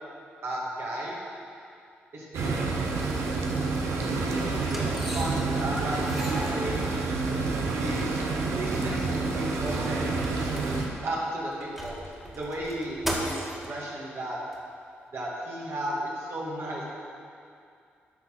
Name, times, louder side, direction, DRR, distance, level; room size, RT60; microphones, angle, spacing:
voice 1, 0.4-1.2 2.1-2.6 4.4-7.2 7.8-8.1 8.5-10.1 11.0-14.4 15.1-16.8, right 1 dB, 65° right, -4 dB, 2.2 m, -35 dB
sound 1, 2.3-10.9, right 3 dB, 80° right, 0.9 m, -28 dB
sound 2, 4.6-5.6 5.9-7.3 8.0-8.1 8.4-8.5 8.9-11.1 11.5-13.7 14.5-14.6, equal, 5° right, 1.9 m, -37 dB
11.5 x 3.9 x 6.0 m, 2.4 s
supercardioid pair, 55°, 5 cm